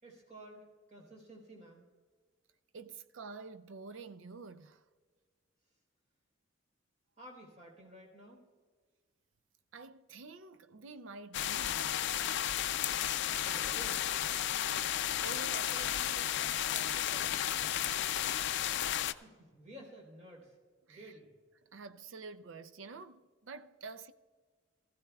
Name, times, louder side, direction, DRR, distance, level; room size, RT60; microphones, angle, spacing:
voice 1, 0.0-1.8 7.2-8.4 13.4-14.2 14.6-15.0 19.0-20.6 20.9-21.3, right 1 dB, 35° right, 3.6 m, -53 dB
voice 2, 2.7-4.8 9.7-12.0 15.2-17.6 20.9-21.1 21.7-24.1, right 4 dB, 75° right, 0.5 m, -48 dB
sound 1, 11.3-19.1, left 11 dB, 60° left, 0.4 m, -33 dB
19.0 x 15.0 x 2.3 m
head